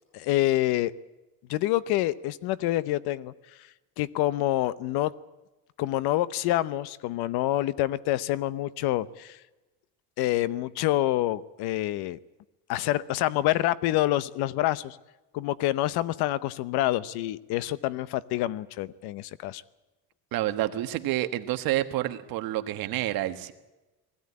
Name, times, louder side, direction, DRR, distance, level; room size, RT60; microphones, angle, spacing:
voice 1, 0.1-0.9 1.5-3.3 4.0-5.1 5.8-9.4 10.2-12.2 12.7-15.0 15.3-19.6, left 15 dB, 85° left, 17 dB, 0.9 m, -27 dB
voice 2, 20.3-23.5, right 14 dB, 65° right, 8 dB, 1.4 m, -28 dB
20.0 x 15.5 x 9.7 m, 1.1 s
cardioid pair, 165°, 38 cm